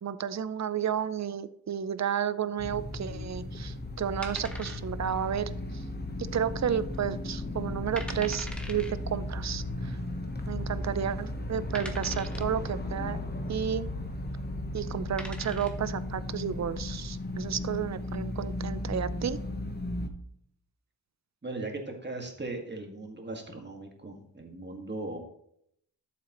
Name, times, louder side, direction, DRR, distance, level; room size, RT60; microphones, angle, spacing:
voice 1, 0.0-5.9 6.3-10.0 10.5-13.2 13.5-13.9 14.7-19.4, right 8 dB, 40° right, 14 dB, 0.6 m, -32 dB
sound 1, 2.6-20.1, left 1 dB, 25° left, 1.1 m, -35 dB
sound 2, 4.2-5.2 5.4-5.5 6.1-6.6 6.9-7.0 7.6-7.7 8.0-8.9 10.0-10.1 10.8-10.9 11.7-12.6 14.4-14.6 15.0-15.9, equal, ahead, 1.3 m, -42 dB
voice 2, 21.4-25.2, right 2 dB, 25° right, 2 dB, 1.9 m, -38 dB
12.5 x 7.2 x 3.1 m, 0.71 s
wide cardioid pair, 105°, 42 cm